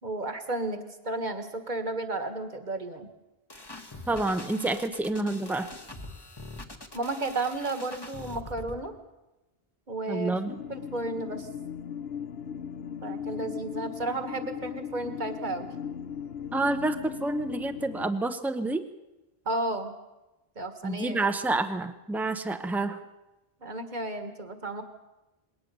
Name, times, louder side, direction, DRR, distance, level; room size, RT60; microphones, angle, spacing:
voice 1, 0.0-3.1 6.9-8.9 9.9-10.3 10.7-11.5 13.0-15.7 19.5-19.9 20.6-21.2 23.6-24.8, right 2 dB, 45° right, 8 dB, 1.8 m, -33 dB
sound 1, 3.5-8.8, left 2 dB, 25° left, 1.5 m, -43 dB
voice 2, 4.1-5.7 10.1-10.6 16.5-18.8 20.8-23.0, right 2 dB, ahead, 9 dB, 0.8 m, -28 dB
sound 2, 10.5-18.1, left 7 dB, 75° left, 1.1 m, -38 dB
21.0 x 18.0 x 6.8 m, 1.0 s
omnidirectional pair, 1.0 m